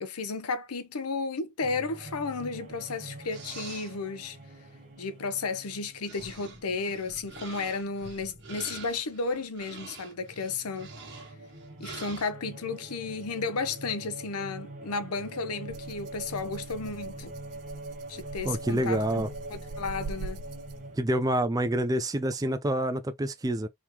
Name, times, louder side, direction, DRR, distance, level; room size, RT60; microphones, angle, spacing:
voice 1, 0.0-4.4 5.0-10.9 11.8-17.3 18.1-19.2 19.5-20.4, left 4 dB, 80° left, 0.7 m, -33 dB
sound 1, 1.6-9.8 10.1-21.0, right 2 dB, 35° right, 1.1 m, -44 dB
sound 2, 3.3-4.0 5.6-5.7 6.0-12.3, right 5 dB, 50° right, 1.5 m, -46 dB
Rattle (instrument), 15.7-21.0, right 3 dB, 85° right, 0.5 m, -43 dB
voice 2, 18.4-19.3 21.0-23.7, right 1 dB, 15° right, 0.4 m, -27 dB
3.6 x 2.9 x 3.0 m
head